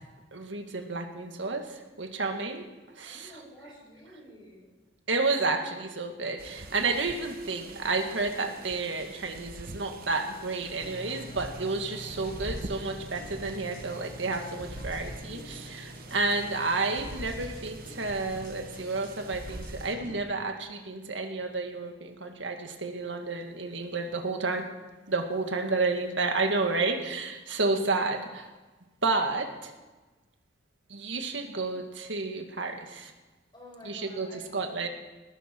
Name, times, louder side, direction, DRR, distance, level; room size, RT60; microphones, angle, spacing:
voice 1, 0.3-2.7 3.0-3.3 5.1-24.7 25.1-28.5 29.0-29.7 30.9-33.1 33.8-34.9, right 3 dB, 75° right, 5 dB, 1.9 m, -31 dB
voice 2, 3.0-4.7 33.5-34.7, equal, 25° left, -5 dB, 7.5 m, -50 dB
sound 1, 6.4-19.9, right 2 dB, 50° right, 1.1 m, -46 dB
sound 2, 10.8-20.2, equal, 80° left, 7.5 m, -43 dB
20.0 x 15.0 x 4.6 m, 1.2 s
head